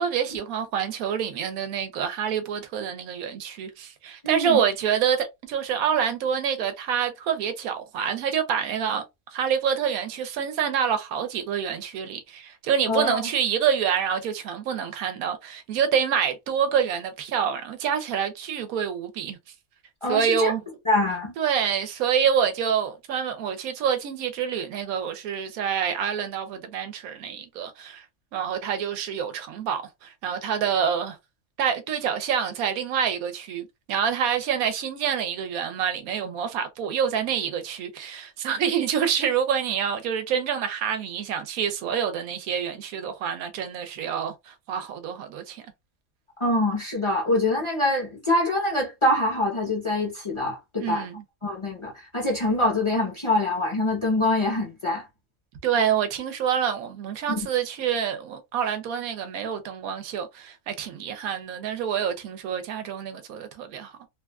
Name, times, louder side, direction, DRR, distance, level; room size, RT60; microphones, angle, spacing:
voice 1, 0.0-9.0 9.3-19.4 20.1-20.6 21.4-28.0 28.3-31.2 31.6-45.6 50.8-51.2 55.6-63.9, right 8 dB, 85° right, 1.1 m, -27 dB
voice 2, 4.2-4.6 12.9-13.3 20.0-20.5 20.9-21.3 46.4-51.0 51.4-55.0 57.3-57.5, left 1 dB, 25° left, 0.7 m, -24 dB
3.1 x 2.3 x 2.2 m
omnidirectional pair, 1.5 m